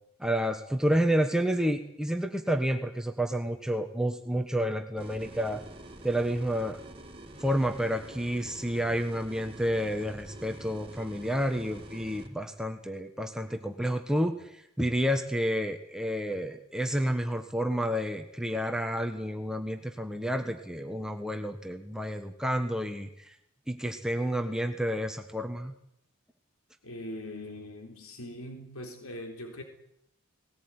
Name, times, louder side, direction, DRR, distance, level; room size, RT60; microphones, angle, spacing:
voice 1, 0.2-5.6 6.0-6.8 7.4-23.3 23.7-25.7, equal, 5° right, 5 dB, 1.3 m, -30 dB
sound 1, 5.0-12.3, right 1 dB, 25° right, 3.0 m, -47 dB
voice 2, 26.8-29.6, left 1 dB, 80° left, 4 dB, 3.7 m, -41 dB
19.5 x 18.5 x 9.8 m, 0.75 s
head